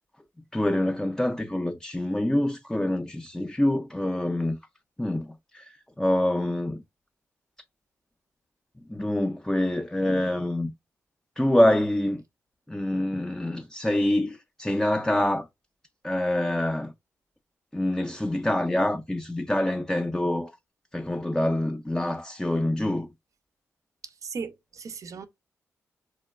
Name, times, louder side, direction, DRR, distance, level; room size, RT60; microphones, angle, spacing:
voice 1, 0.5-4.6 5.0-6.8 8.9-10.7 11.4-12.2 12.7-15.5 16.0-16.9 17.7-20.5 20.9-23.1, left 1 dB, 10° left, 0.4 m, -26 dB
voice 2, 24.0-25.3, right 5 dB, 60° right, 0.4 m, -37 dB
2.8 x 2.1 x 2.2 m
supercardioid pair, 45°, 6 cm